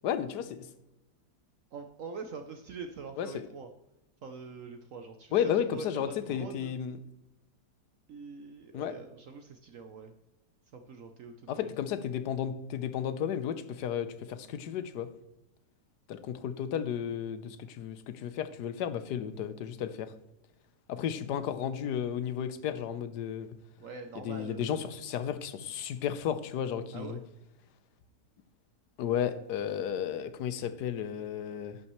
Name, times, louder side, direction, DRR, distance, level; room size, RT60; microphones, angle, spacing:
voice 1, 0.0-0.7 3.2-3.5 5.3-7.0 8.7-8.9 11.5-15.1 16.1-20.1 20.9-23.6 24.2-27.2 29.0-31.8, left 9 dB, 80° left, 12 dB, 1.3 m, -33 dB
voice 2, 1.7-3.7 4.2-6.7 8.1-10.1 10.7-11.7 23.8-24.8 26.9-27.2, right 5 dB, 60° right, 6 dB, 1.0 m, -44 dB
11.0 x 8.7 x 3.1 m, 0.92 s
omnidirectional pair, 1.7 m